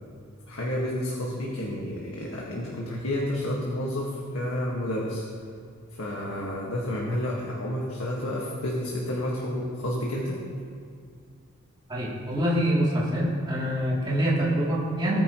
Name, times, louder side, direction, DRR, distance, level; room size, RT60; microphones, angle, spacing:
voice 1, 0.5-5.2 6.0-10.4, left 1 dB, 80° left, -3 dB, 1.6 m, -30 dB
voice 2, 11.9-15.2, equal, 20° right, -7 dB, 2.8 m, -25 dB
19.0 x 9.3 x 3.0 m, 2.2 s
head